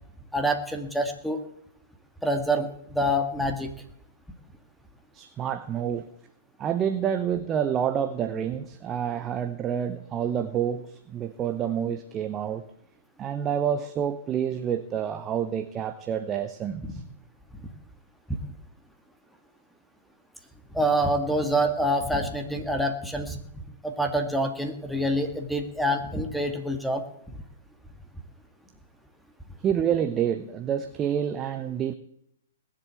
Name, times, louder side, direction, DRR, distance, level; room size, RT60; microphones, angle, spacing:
voice 1, 0.3-1.4 2.2-3.7 18.3-18.4 20.7-27.0, equal, ahead, 6 dB, 2.0 m, -26 dB
voice 2, 5.1-6.1 6.6-12.7 13.2-17.0 29.6-31.9, right 9 dB, 25° right, 9 dB, 1.0 m, -28 dB
20.0 x 7.7 x 8.4 m, 0.75 s
hypercardioid pair, 130°, 0 cm